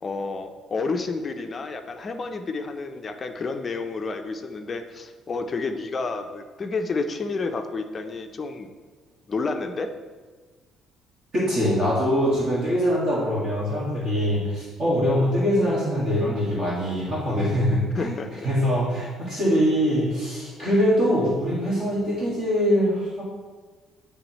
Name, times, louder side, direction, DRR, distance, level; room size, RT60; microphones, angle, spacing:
voice 1, 0.0-8.7 9.3-9.9 17.9-18.5, left 3 dB, 30° left, 6 dB, 0.4 m, -30 dB
voice 2, 11.3-23.2, equal, 45° right, -7 dB, 1.7 m, -23 dB
10.0 x 3.4 x 3.0 m, 1.4 s
cardioid pair, 140°, 0 cm